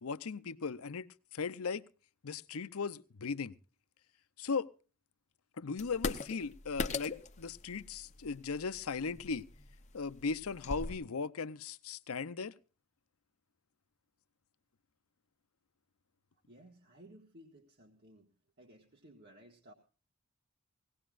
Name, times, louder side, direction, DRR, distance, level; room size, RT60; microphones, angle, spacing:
voice 1, 0.0-1.8 2.2-3.5 4.4-4.7 5.6-9.5 9.9-12.5, left 5 dB, 85° left, 0.7 m, -38 dB
sound 1, 5.8-10.9, left 3 dB, 35° left, 0.8 m, -41 dB
voice 2, 16.5-18.3 18.6-19.7, right 1 dB, 50° right, 1.7 m, -58 dB
20.5 x 17.5 x 2.5 m
head